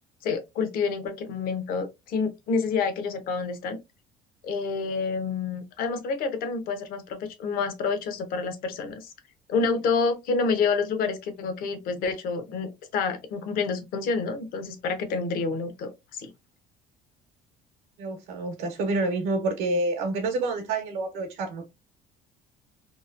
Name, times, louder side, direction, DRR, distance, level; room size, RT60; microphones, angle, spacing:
voice 1, 0.2-3.8 4.4-9.1 9.5-16.3, left 4 dB, 60° left, 0.7 m, -28 dB
voice 2, 18.0-21.6, right 2 dB, 90° right, 0.8 m, -28 dB
2.9 x 2.1 x 2.4 m
cardioid pair, 115°, 17 cm